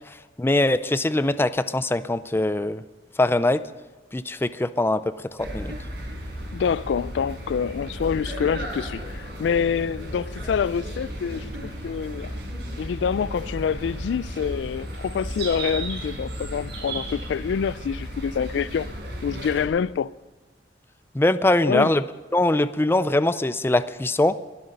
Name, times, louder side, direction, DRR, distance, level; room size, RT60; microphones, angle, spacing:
voice 1, 0.4-2.8 3.2-3.6 4.1-5.0 5.4-5.7 21.1-22.0 22.3-24.4, left 2 dB, 15° left, 0.4 m, -22 dB
sound 1, 5.4-19.7, right 1 dB, 65° right, 5.2 m, -34 dB
voice 2, 6.5-12.4 12.8-18.9 19.2-20.1 21.6-21.9, left 7 dB, 85° left, 0.3 m, -26 dB
22.5 x 8.0 x 5.2 m
head